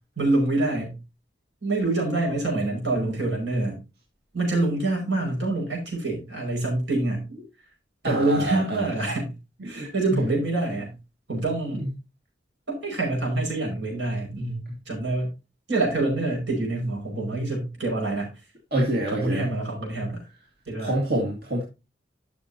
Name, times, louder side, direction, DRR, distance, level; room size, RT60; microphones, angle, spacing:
voice 1, 0.2-1.0 1.6-3.8 4.3-7.2 8.0-9.3 9.6-11.0 11.3-11.9 12.7-15.3 15.7-18.3 19.1-20.2 20.7-20.9, right 2 dB, 85° right, -1 dB, 5.5 m, -26 dB
voice 2, 8.0-8.9 9.7-10.2 11.7-11.9 18.7-19.5 20.8-21.6, right 1 dB, 60° right, -2 dB, 2.0 m, -27 dB
12.5 x 6.5 x 2.8 m, 0.27 s
head